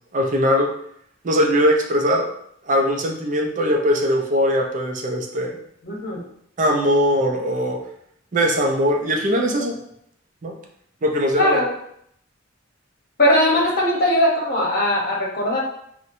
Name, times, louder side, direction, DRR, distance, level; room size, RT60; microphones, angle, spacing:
voice 1, 0.1-0.7 1.2-2.3 2.7-5.6 6.6-7.8 8.3-9.8 10.4-10.5 11.0-11.6, equal, 40° right, 1 dB, 0.5 m, -20 dB
voice 2, 5.8-6.2 11.4-11.7 13.2-15.6, left 1 dB, 45° left, -3 dB, 0.9 m, -19 dB
4.4 x 2.1 x 2.6 m, 0.71 s
head